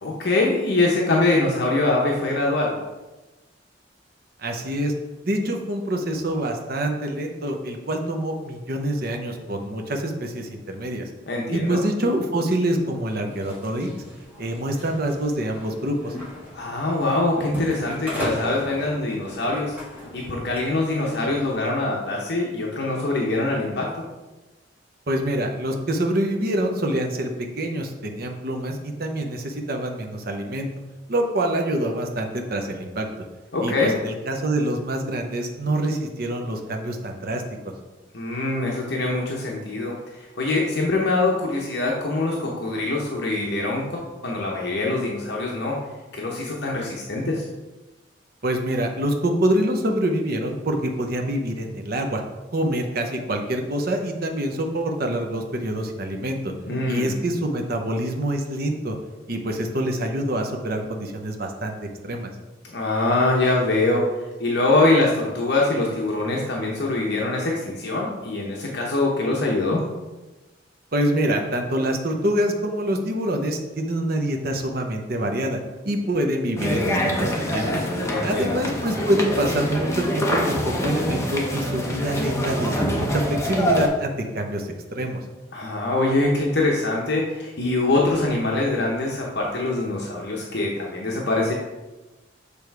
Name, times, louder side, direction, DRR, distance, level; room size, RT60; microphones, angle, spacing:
voice 1, 0.0-2.7 11.3-11.8 16.5-19.8 20.1-24.0 33.5-33.9 38.1-45.8 46.1-47.5 56.7-57.1 62.6-64.0 64.4-69.8 78.0-78.6 85.5-91.5, left 2 dB, 60° left, -2 dB, 0.8 m, -23 dB
voice 2, 4.4-4.9 5.2-11.1 11.5-13.9 14.4-16.1 25.1-30.7 31.1-33.1 33.6-37.4 48.4-52.2 52.5-56.5 56.9-59.0 59.3-61.8 62.0-62.3 70.9-75.6 75.8-77.8 78.2-85.2, right 1 dB, 50° right, 3 dB, 0.8 m, -26 dB
sound 1, 13.3-21.6, left 1 dB, 10° right, 1.7 m, -37 dB
sound 2, 76.6-83.9, equal, 15° left, 0.7 m, -25 dB
6.8 x 3.4 x 4.6 m, 1.1 s
head